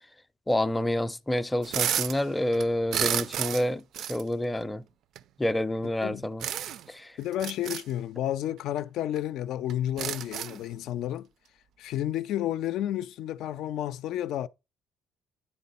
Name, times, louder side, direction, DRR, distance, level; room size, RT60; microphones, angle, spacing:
voice 1, 0.5-3.8 4.1-4.8 5.4-6.5 6.9-7.1, left 1 dB, 10° left, 0.5 m, -28 dB
sound 1, 1.6-2.2 2.5-3.7 3.9-4.2 5.2-5.3 6.4-6.9 7.3-7.8 8.8-8.9 9.2-9.3 9.7-10.6, right 10 dB, 65° right, 0.5 m, -31 dB
voice 2, 7.2-11.3 11.8-14.5, left 12 dB, 70° left, 0.5 m, -31 dB
10.0 x 4.1 x 5.5 m
cardioid pair, 115°, 0 cm